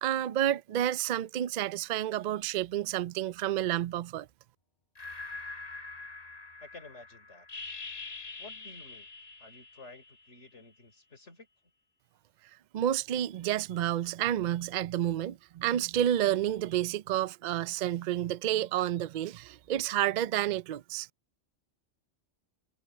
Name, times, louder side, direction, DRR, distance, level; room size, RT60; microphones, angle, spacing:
voice 1, 0.0-4.3 12.7-21.1, right 11 dB, 60° right, 0.4 m, -30 dB
sound 1, 5.0-10.4, left 4 dB, 35° left, 1.5 m, -44 dB
voice 2, 6.6-7.5 8.4-9.1 9.4-11.5, left 3 dB, 70° left, 4.0 m, -51 dB
omnidirectional pair, 1.2 m